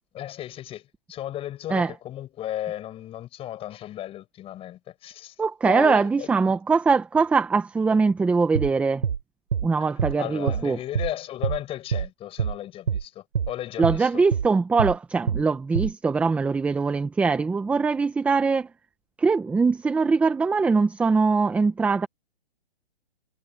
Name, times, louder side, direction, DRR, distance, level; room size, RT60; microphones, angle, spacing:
voice 1, 0.1-5.4 5.7-6.3 10.2-14.2, left 12 dB, 15° left, 7.1 m, -35 dB
voice 2, 5.4-9.0 9.6-10.8 13.8-18.7 19.2-22.1, right 4 dB, 5° right, 1.0 m, -22 dB
sound 1, 8.5-8.7 9.0-9.2 9.5-9.7 10.0-10.1 10.5-10.6 10.9-11.1 11.4-11.6 11.9-12.1 12.4-12.5 12.9-13.0 13.3-13.5 13.8-14.0 14.3-14.5 14.8-14.9 15.3-15.4 15.7-15.9, right 7 dB, 70° right, 6.1 m, -25 dB
hypercardioid pair, 150°, 32 cm